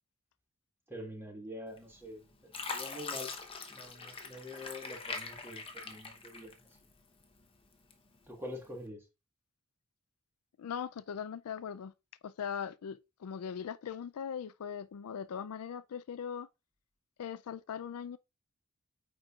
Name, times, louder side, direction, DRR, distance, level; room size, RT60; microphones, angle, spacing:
voice 1, 0.9-3.3 3.7-6.5 8.3-9.0, left 1 dB, 10° right, 1.5 m, -45 dB
Fill (with liquid), 1.8-2.1 2.5-6.9 7.4-8.2 8.7-8.9, left 4 dB, 25° left, 0.9 m, -42 dB
voice 2, 10.6-11.9 12.2-16.5 17.2-18.2, left 7 dB, 80° left, 0.4 m, -40 dB
8.9 x 4.4 x 2.4 m
head